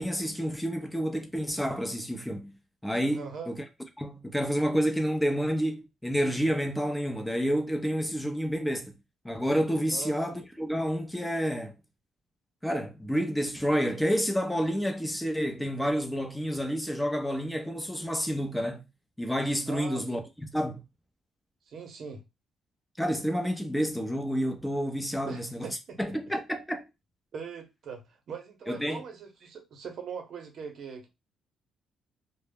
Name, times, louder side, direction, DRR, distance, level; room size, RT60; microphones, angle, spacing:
voice 1, 0.0-2.5 2.8-3.6 4.0-8.9 9.2-11.7 12.6-18.8 19.2-20.2 20.5-20.8 23.0-25.7 26.0-26.8 28.7-29.0, equal, 5° left, 0.5 m, -29 dB
voice 2, 3.1-3.5 9.9-10.4 19.7-20.3 21.7-22.2 25.3-26.1 27.3-28.0 28.3-31.1, right 6 dB, 65° right, 0.8 m, -41 dB
2.1 x 2.0 x 3.4 m
cardioid pair, 90°, 0 cm